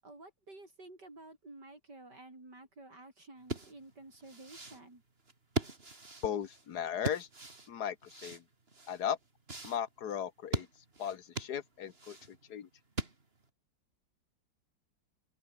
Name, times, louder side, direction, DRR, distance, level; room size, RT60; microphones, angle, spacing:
voice 1, 0.0-5.0, right 2 dB, 60° right, 7.5 m, -52 dB
sound 1, 3.4-13.5, right 3 dB, 30° right, 3.0 m, -41 dB
voice 2, 6.2-7.3 7.7-8.4 8.9-9.2 9.6-10.7 11.0-12.7, left 9 dB, 60° left, 1.9 m, -37 dB
open air
omnidirectional pair, 2.0 m